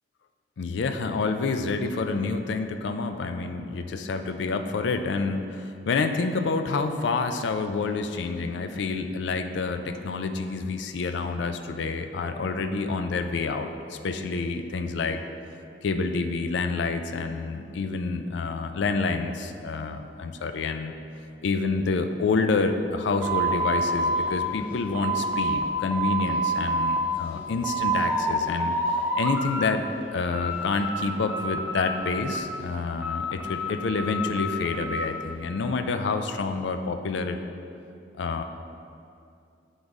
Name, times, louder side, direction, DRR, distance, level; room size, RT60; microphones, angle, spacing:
voice 1, 0.6-15.2 15.8-21.0 21.4-28.7 29.2-29.8 30.1-37.4 38.2-38.4, left 4 dB, 75° left, 7 dB, 0.4 m, -28 dB
sound 1, 23.2-25.7 25.9-27.0 27.4-28.3 28.6-29.7 30.0-31.0 31.3-32.6 33.0-35.1, right 1 dB, 10° right, 0.6 m, -28 dB
7.8 x 3.9 x 3.5 m, 2.5 s
head